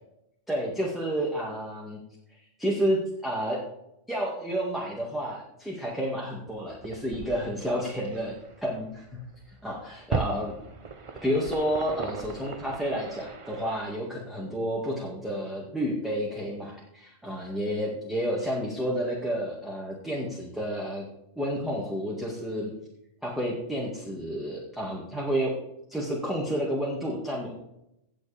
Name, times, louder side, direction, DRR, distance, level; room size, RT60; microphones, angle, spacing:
voice 1, 0.5-2.0 2.6-3.6 4.1-9.0 9.6-10.5 11.2-21.1 21.4-22.7 23.2-25.5 25.9-27.5, equal, ahead, -4 dB, 2.0 m, -30 dB
sound 1, 6.5-13.8, right 4 dB, 30° right, 0.7 m, -38 dB
17.5 x 7.2 x 3.5 m, 0.82 s
omnidirectional pair, 1.3 m